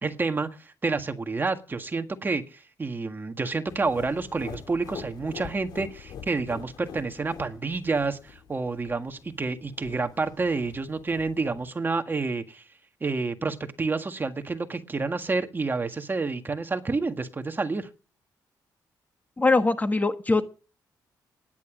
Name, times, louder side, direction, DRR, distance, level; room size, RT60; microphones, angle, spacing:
voice 1, 0.0-12.6 13.0-17.9, right 3 dB, 30° right, 1.7 m, -29 dB
sound 1, 3.7-11.7, left 7 dB, 75° left, 3.4 m, -45 dB
voice 2, 19.4-20.4, left 3 dB, 20° left, 1.4 m, -22 dB
16.5 x 11.0 x 5.1 m
cardioid pair, 85°, 7 cm